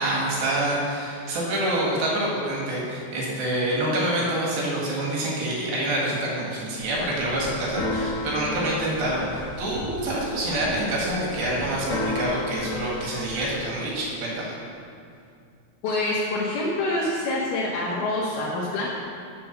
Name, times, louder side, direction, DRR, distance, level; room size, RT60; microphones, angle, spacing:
voice 1, 0.0-14.6, right 1 dB, 80° right, -4 dB, 3.7 m, -26 dB
Keyboard (musical), 6.8-13.5, left 2 dB, 60° left, 1.6 m, -33 dB
voice 2, 15.8-18.9, left 2 dB, 90° left, -5 dB, 3.1 m, -26 dB
7.8 x 7.7 x 6.7 m, 2.4 s
omnidirectional pair, 4.2 m